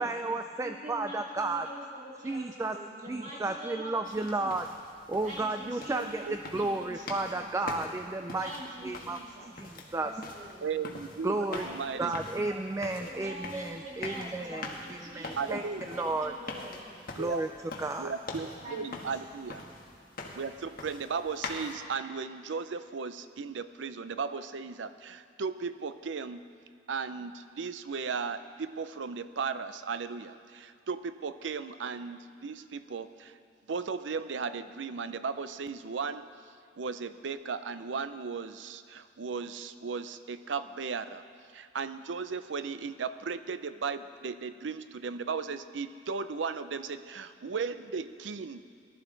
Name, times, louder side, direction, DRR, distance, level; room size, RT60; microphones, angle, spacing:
voice 1, 0.0-1.7 2.2-2.8 3.1-4.7 5.1-8.5 8.8-10.3 11.2-11.7 12.0-16.3 17.2-17.5 17.8-18.1, right 2 dB, 15° right, 7 dB, 0.3 m, -33 dB
voice 2, 0.6-4.6 5.2-7.6 8.3-10.7 11.5-16.9 18.6-19.2, right 1 dB, 40° right, -4 dB, 2.5 m, -46 dB
sound 1, 4.0-21.7, left 3 dB, 50° left, 1.4 m, -44 dB
voice 3, 5.9-6.3 10.6-12.1 15.4-15.8 17.2-17.4 18.0-19.6 20.3-26.4 26.9-33.3 33.7-36.3 36.8-41.2 41.5-48.6, right 5 dB, 85° right, 12 dB, 0.5 m, -36 dB
18.0 x 12.0 x 3.9 m, 2.3 s
head